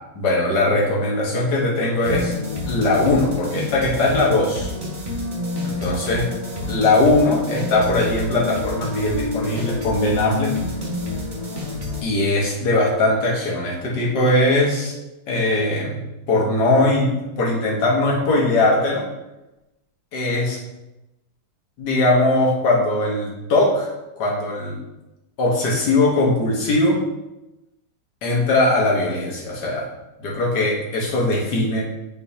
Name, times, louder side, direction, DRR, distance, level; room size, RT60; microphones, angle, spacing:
voice 1, 0.2-2.3 2.7-4.7 5.6-6.3 6.7-10.5 12.0-15.0 15.3-16.0 16.3-19.1 20.1-20.6 21.8-23.9 24.2-24.8 25.4-27.0 28.2-29.9 30.2-31.8, left 2 dB, 55° left, -3 dB, 1.8 m, -20 dB
sound 1, 2.0-12.0, left 2 dB, 30° right, 0.9 m, -28 dB
9.4 x 4.0 x 2.8 m, 0.99 s
omnidirectional pair, 2.3 m